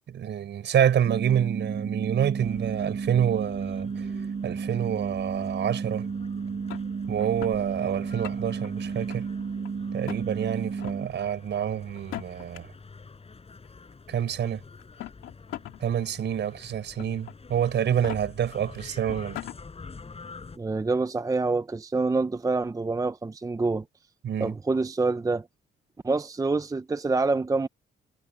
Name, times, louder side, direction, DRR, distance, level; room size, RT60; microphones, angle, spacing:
voice 1, 0.1-4.1 4.4-6.0 7.1-9.3 9.9-12.7 14.1-14.6 15.8-19.4 24.2-24.6, right 9 dB, 65° right, 5.0 m, -27 dB
sound 1, 1.1-11.1, right 5 dB, 40° right, 4.0 m, -32 dB
sound 2, 2.4-20.6, left 4 dB, 30° left, 7.4 m, -47 dB
sound 3, 6.7-7.6 8.1-8.7 9.1-9.7 10.0-10.2 10.7-11.0 12.0-12.6 13.6-13.7 14.8-15.8 16.2-16.3 17.0-17.3 17.9-18.2 18.7-18.8 19.1-19.6, left 14 dB, 90° left, 2.2 m, -39 dB
voice 2, 20.6-23.8 24.4-25.5 26.0-27.7, right 3 dB, 15° right, 0.7 m, -26 dB
cardioid pair, 90°, 20 cm